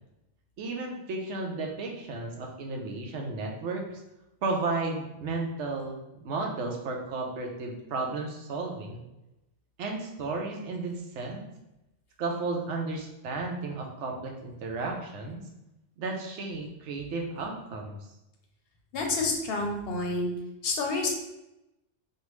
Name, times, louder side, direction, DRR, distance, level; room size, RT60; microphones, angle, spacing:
voice 1, 0.6-3.9 4.4-9.0 9.8-11.5 12.2-15.4 16.0-18.0, right 3 dB, 80° right, 1 dB, 0.9 m, -33 dB
voice 2, 18.9-20.3 20.6-21.1, left 3 dB, 60° left, 1 dB, 0.7 m, -28 dB
3.3 x 2.3 x 3.0 m, 0.91 s
omnidirectional pair, 1.2 m